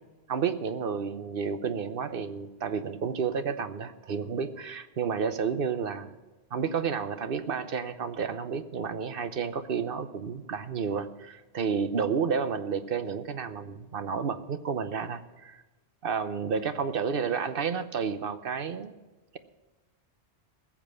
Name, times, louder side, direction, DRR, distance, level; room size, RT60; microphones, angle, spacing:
voice 1, 0.3-6.1 6.5-15.6 16.0-18.9, right 6 dB, 60° right, 10 dB, 1.0 m, -31 dB
19.5 x 7.4 x 5.7 m, 1.2 s
omnidirectional pair, 1.1 m